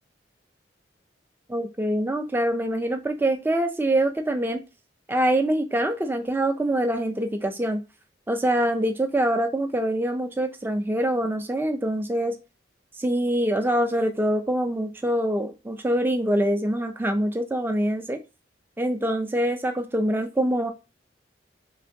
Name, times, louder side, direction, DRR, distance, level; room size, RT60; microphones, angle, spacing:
voice 1, 1.5-4.6 5.1-7.8 8.3-12.3 13.0-18.2 18.8-20.7, right 1 dB, 10° right, 7 dB, 0.4 m, -24 dB
3.3 x 2.8 x 2.6 m, 0.28 s
head